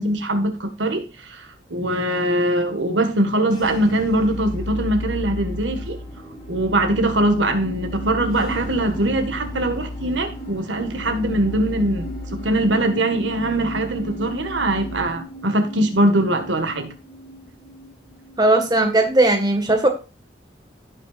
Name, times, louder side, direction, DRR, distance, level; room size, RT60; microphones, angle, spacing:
voice 1, 0.0-6.0 6.5-16.9, right 1 dB, 80° right, 1.6 m, -22 dB
sound 1, 3.5-18.9, right 1 dB, 25° left, 3.8 m, -37 dB
sound 2, 3.6-15.0, left 2 dB, 55° left, 3.8 m, -35 dB
voice 2, 18.4-19.9, right 2 dB, 20° right, 1.6 m, -17 dB
16.0 x 6.2 x 2.5 m
head